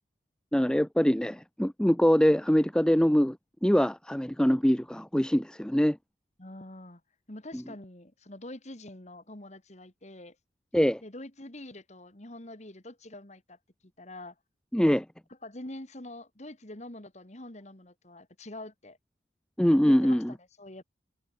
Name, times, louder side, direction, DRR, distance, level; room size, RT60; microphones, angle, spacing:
voice 1, 0.5-3.4 3.6-6.0 7.5-7.6 10.7-11.0 14.7-15.1 19.6-20.3, equal, 5° left, 0.5 m, -23 dB
voice 2, 6.4-7.0 7.3-10.4 11.0-13.6 14.0-14.3 15.4-19.0 19.9-20.2 20.6-20.8, left 1 dB, 40° left, 2.3 m, -45 dB
head